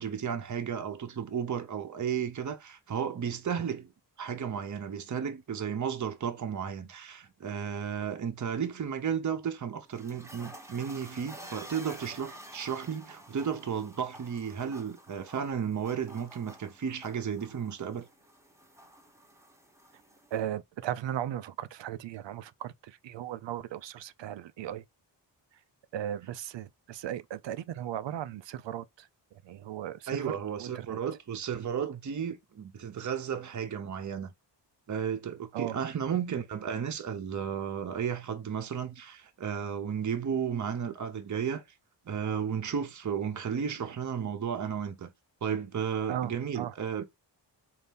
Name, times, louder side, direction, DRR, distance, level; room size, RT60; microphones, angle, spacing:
voice 1, 0.0-3.9 4.2-18.1 30.1-34.3 34.9-41.6 42.1-45.1 45.4-47.1, right 7 dB, 40° right, 0.8 m, -33 dB
sound 1, 9.7-20.4, right 1 dB, 5° right, 1.0 m, -50 dB
voice 2, 20.3-24.8 25.9-31.0 35.5-35.8 46.1-46.7, right 11 dB, 75° right, 0.6 m, -37 dB
4.1 x 2.7 x 3.5 m
cardioid pair, 90°, 44 cm